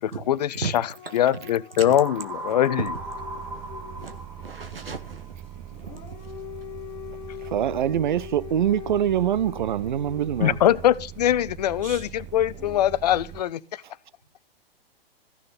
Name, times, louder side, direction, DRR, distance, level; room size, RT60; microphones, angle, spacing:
voice 1, 0.3-0.9 1.1-2.9 10.4-13.8, left 11 dB, 45° left, 0.6 m, -22 dB
Dog / Siren, 0.9-4.2 5.7-10.8 12.5-12.8, left 13 dB, 15° left, 1.1 m, -42 dB
sound 1, 1.9-5.7, right 2 dB, 5° right, 3.4 m, -38 dB
sound 2, 2.9-13.4, right 11 dB, 20° right, 0.9 m, -42 dB
voice 2, 3.3-5.3 5.8-6.3 10.6-10.8 11.8-12.1, right 5 dB, 70° right, 1.5 m, -37 dB
voice 3, 7.4-10.6, right 10 dB, 50° right, 0.6 m, -24 dB
14.5 x 6.6 x 5.3 m
figure-of-eight pair, 115°, 30 cm